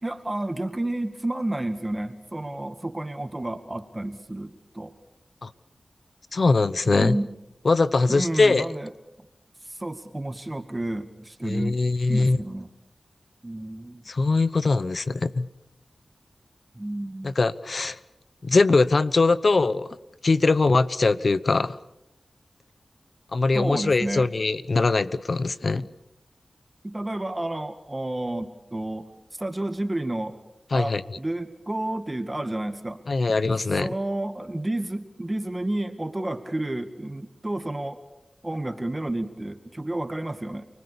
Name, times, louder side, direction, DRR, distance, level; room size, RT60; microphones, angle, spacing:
voice 1, 0.0-4.9 6.9-7.3 8.1-8.9 9.7-11.8 12.1-12.7 13.4-14.1 16.8-17.4 23.5-24.3 25.8-25.9 26.8-30.4 30.7-33.0 33.7-38.0 38.4-40.7, right 1 dB, 25° right, 8 dB, 2.0 m, -31 dB
voice 2, 6.3-7.2 7.6-8.7 11.4-12.4 14.1-15.5 17.2-18.0 18.4-19.9 20.2-21.7 23.3-25.8 30.7-31.0 33.1-33.9, left 3 dB, 65° left, 16 dB, 0.9 m, -22 dB
29.5 x 20.5 x 7.0 m, 0.86 s
cardioid pair, 45°, 0 cm